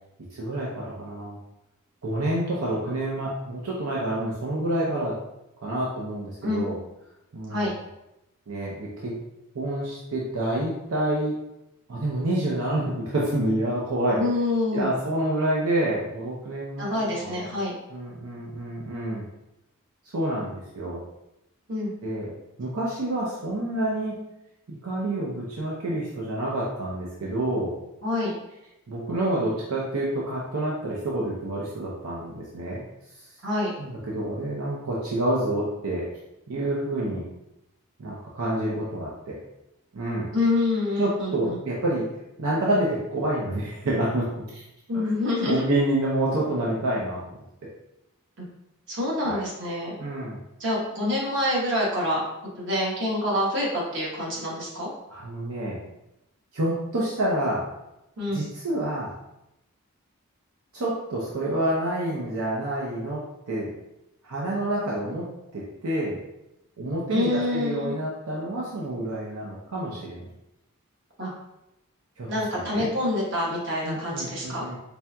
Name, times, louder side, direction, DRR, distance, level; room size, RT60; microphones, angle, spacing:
voice 1, 0.3-1.4 2.0-5.2 5.6-6.8 7.3-7.7 8.5-9.2 9.5-11.4 11.9-14.2 14.7-17.5 17.9-19.3 20.1-21.0 22.0-22.3 22.6-24.2 24.7-27.7 28.9-32.8 33.8-36.1 36.5-37.3 38.0-39.4 39.9-40.3 41.0-42.1 42.4-44.6 44.9-45.0 45.4-47.2 49.2-49.4 50.0-50.4 55.1-55.8 56.5-57.7 58.3-59.1 60.7-63.7 64.2-65.3 65.5-66.2 66.8-70.2 72.2-72.9 73.8-74.8, right 1 dB, 80° right, -5 dB, 0.7 m, -28 dB
voice 2, 14.2-14.9 16.8-17.7 21.7-21.9 28.0-28.3 33.4-33.7 40.3-41.6 44.9-45.6 48.4-48.5 48.9-49.9 50.6-52.2 52.6-54.9 58.2-58.4 67.1-68.0 71.2-71.3 72.3-74.6, left 1 dB, 55° right, -4 dB, 1.1 m, -26 dB
4.3 x 3.4 x 2.3 m, 0.89 s
head